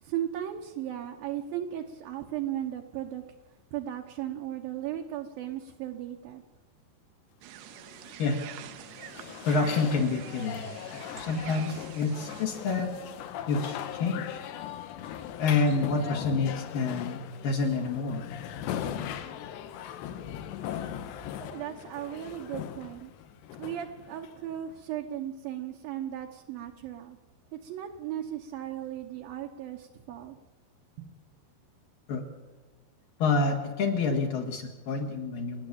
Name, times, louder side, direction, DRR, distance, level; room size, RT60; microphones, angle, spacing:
voice 1, 0.0-3.2 3.7-6.4 21.4-23.1 23.6-27.2 27.5-30.4 31.0-31.1, right 11 dB, 70° right, 2 dB, 2.5 m, -36 dB
sound 1, 7.4-12.5, right 12 dB, 85° right, 3.2 m, -46 dB
sound 2, 7.7-24.7, left 10 dB, 80° left, 3.2 m, -39 dB
voice 2, 9.4-10.6 11.0-12.9 13.5-14.4 15.4-18.2 32.1-32.2 33.2-35.7, left 4 dB, 60° left, 1 dB, 3.4 m, -28 dB
29.0 x 10.5 x 8.6 m, 1.3 s
omnidirectional pair, 5.0 m